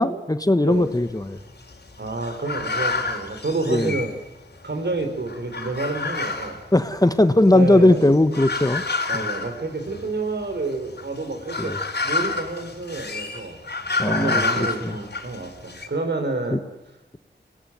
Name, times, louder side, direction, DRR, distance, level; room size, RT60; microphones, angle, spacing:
voice 1, 0.0-1.4 3.7-3.9 6.7-8.8 9.1-9.3 11.6-11.8 14.0-15.0 16.5-16.6, left 1 dB, 20° left, 11 dB, 1.4 m, -19 dB
sound 1, 0.7-4.7 4.9-15.9, left 3 dB, 60° left, 4.2 m, -29 dB
voice 2, 2.0-4.1 4.6-6.6 7.5-8.1 9.1-11.7 12.0-13.6 14.0-16.6, right 3 dB, 65° right, 5 dB, 4.7 m, -29 dB
25.0 x 18.5 x 9.4 m, 0.95 s
wide cardioid pair, 55°, 19 cm